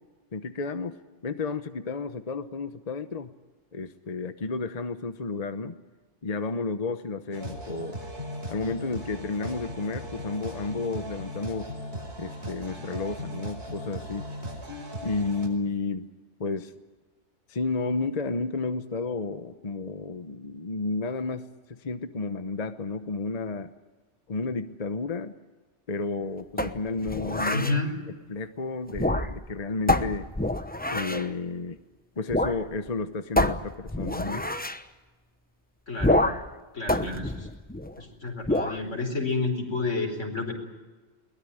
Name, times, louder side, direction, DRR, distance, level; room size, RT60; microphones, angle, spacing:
voice 1, 0.3-1.0 1.2-3.3 3.7-5.8 6.2-8.0 8.5-11.7 12.2-14.3 15.0-16.1 16.4-16.7 17.5-23.7 24.3-25.4 25.9-27.7 28.3-30.3 30.9-31.8 32.2-34.5, left 3 dB, 35° left, 9 dB, 1.0 m, -32 dB
sound 1, 7.3-15.5, equal, 55° right, 5.6 m, -38 dB
sound 2, 26.6-27.8 28.9-29.5 29.9-31.3 32.3-32.6 32.9-33.0 33.4-34.8 36.0-36.5 36.9-38.0 38.4-38.8, left 1 dB, 10° left, 0.8 m, -27 dB
voice 2, 27.5-27.9 35.9-36.3 36.7-37.5 38.0-40.5, left 3 dB, 80° left, 4 dB, 4.9 m, -30 dB
22.0 x 20.0 x 9.9 m, 1.3 s
omnidirectional pair, 1.2 m